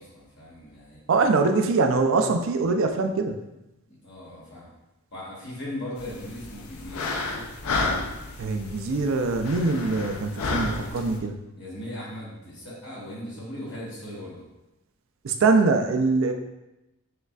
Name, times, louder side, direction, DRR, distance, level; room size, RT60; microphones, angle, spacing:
voice 1, 0.0-1.0 3.9-4.7 5.1-7.5 11.5-14.5, left 1 dB, 50° left, -7 dB, 1.1 m, -38 dB
voice 2, 1.1-3.4 8.4-11.4 15.2-16.3, right 3 dB, 65° right, 6 dB, 0.4 m, -23 dB
sound 1, 6.0-11.2, left 3 dB, 75° left, 0.5 m, -31 dB
6.4 x 2.4 x 2.3 m, 0.95 s
head